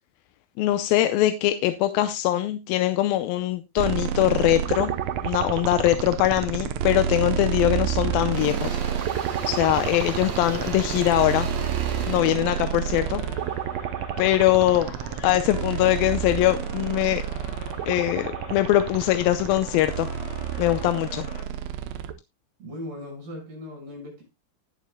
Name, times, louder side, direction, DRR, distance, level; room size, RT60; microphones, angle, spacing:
voice 1, 0.6-4.9 5.2-8.8 9.5-11.5 12.1-13.2 14.2-14.9 15.2-17.2 17.9-20.1 20.6-21.3, left 14 dB, 80° left, 2.5 m, -22 dB
sound 1, 3.8-22.1, right 9 dB, 90° right, 1.5 m, -29 dB
Engine / Drill, 7.4-7.6 7.9-14.1, right 5 dB, 55° right, 2.8 m, -37 dB
sound 2, 8.0-21.5, left 5 dB, 60° left, 2.8 m, -43 dB
voice 2, 13.0-13.4 22.6-24.2, left 1 dB, 70° right, 7.9 m, -39 dB
19.5 x 7.3 x 2.2 m
omnidirectional pair, 4.2 m